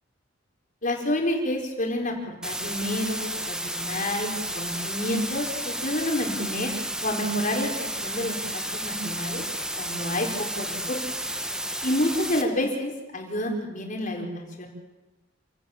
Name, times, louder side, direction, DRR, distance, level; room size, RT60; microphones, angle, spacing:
voice 1, 0.8-6.7 7.0-8.4 8.7-9.4 9.8-11.0 11.8-14.7, left 1 dB, 45° left, 1 dB, 4.5 m, -29 dB
sound 1, 2.4-12.4, right 1 dB, 5° right, 1.4 m, -32 dB
28.0 x 17.5 x 7.4 m, 1.1 s
head